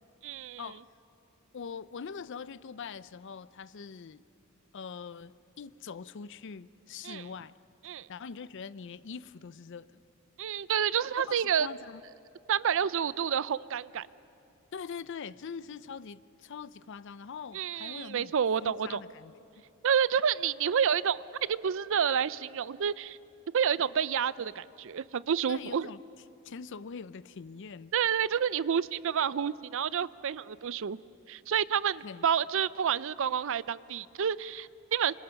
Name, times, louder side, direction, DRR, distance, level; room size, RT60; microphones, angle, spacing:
voice 1, 0.2-0.7 7.0-7.3 7.8-8.1 10.4-11.7 12.5-14.1 17.5-19.0 19.8-21.2 21.5-23.2 23.5-25.9 27.9-31.0 31.3-35.1, right 8 dB, 60° right, 18 dB, 0.4 m, -29 dB
voice 2, 1.5-4.2 4.7-7.6 8.1-10.0 11.3-12.0 14.7-18.3 18.6-19.3 25.5-26.0 26.4-27.9 32.0-32.2, left 6 dB, 55° left, 17 dB, 0.5 m, -43 dB
27.0 x 25.5 x 5.8 m, 2.7 s
head